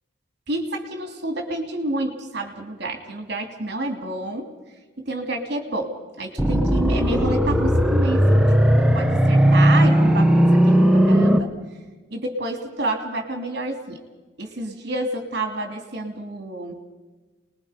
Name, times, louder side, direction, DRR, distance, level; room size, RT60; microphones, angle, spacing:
voice 1, 0.5-4.5 5.0-8.4 8.8-11.6 12.1-14.0 14.4-16.8, right 1 dB, 55° right, 4 dB, 2.9 m, -29 dB
sound 1, 6.4-11.4, equal, 5° right, 1.2 m, -17 dB
29.0 x 21.0 x 5.2 m, 1.3 s
head